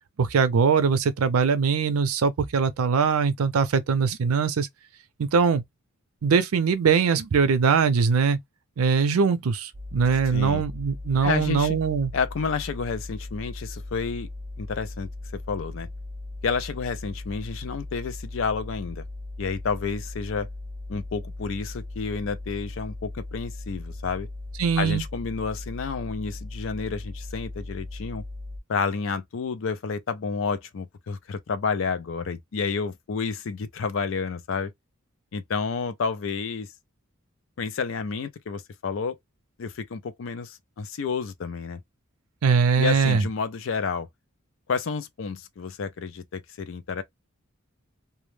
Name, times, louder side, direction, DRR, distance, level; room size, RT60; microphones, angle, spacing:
voice 1, 0.2-4.7 5.2-5.6 6.2-8.4 8.8-12.1 24.6-25.0 42.4-43.3, right 5 dB, 90° right, 0.5 m, -22 dB
sound 1, 9.7-28.6, left 2 dB, 10° right, 0.4 m, -38 dB
voice 2, 10.3-10.6 11.2-11.8 12.1-14.3 14.6-15.9 16.4-19.0 19.4-20.5 20.9-24.3 24.8-28.2 28.7-34.7 35.3-36.7 37.6-39.2 39.6-41.8 42.8-44.1 44.7-47.0, left 5 dB, 65° left, 0.4 m, -30 dB
2.2 x 2.1 x 3.1 m
head